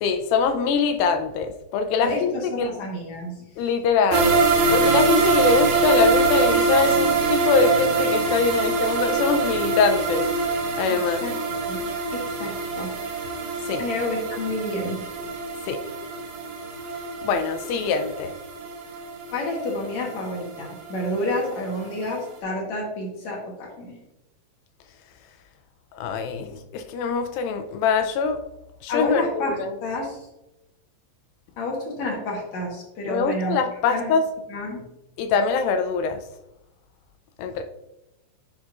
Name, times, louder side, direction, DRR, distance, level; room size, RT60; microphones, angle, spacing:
voice 1, 0.0-2.7 3.6-4.4 4.7-10.3 10.8-11.2 13.7-13.8 15.7-15.8 17.2-18.3 26.0-28.4 28.8-29.7 33.1-34.2 35.2-36.2 37.4-37.6, left 5 dB, 85° left, 7 dB, 2.0 m, -23 dB
voice 2, 2.0-3.4 10.9-11.4 11.7-11.8 12.1-13.0 13.8-15.0 19.3-24.0 28.9-30.3 31.6-33.6 33.9-34.1 34.5-34.8, left 1 dB, 65° left, -2 dB, 1.9 m, -29 dB
sound 1, 4.1-21.2 21.5-21.6 22.0-22.1, right 3 dB, 90° right, 3.3 m, -24 dB
10.0 x 5.0 x 2.4 m, 0.91 s
omnidirectional pair, 4.7 m